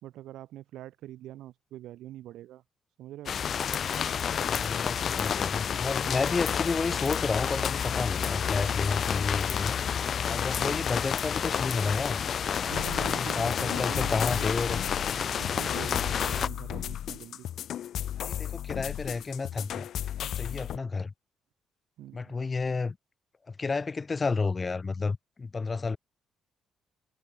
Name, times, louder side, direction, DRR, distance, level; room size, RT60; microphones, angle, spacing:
voice 1, 0.0-2.6 3.0-3.4 10.6-10.9 12.7-14.5 15.3-17.5 22.0-22.3, right 14 dB, 85° right, 2.9 m, -43 dB
sound 1, 3.3-16.5, left 8 dB, 55° left, 1.2 m, -30 dB
voice 2, 4.4-9.7 10.2-12.2 13.0-14.8 18.2-19.9 20.2-21.1 22.1-23.0 23.5-26.0, left 4 dB, 30° left, 2.0 m, -31 dB
sound 2, 12.7-20.8, left 11 dB, 70° left, 0.6 m, -35 dB
cardioid pair, 90°, 0 cm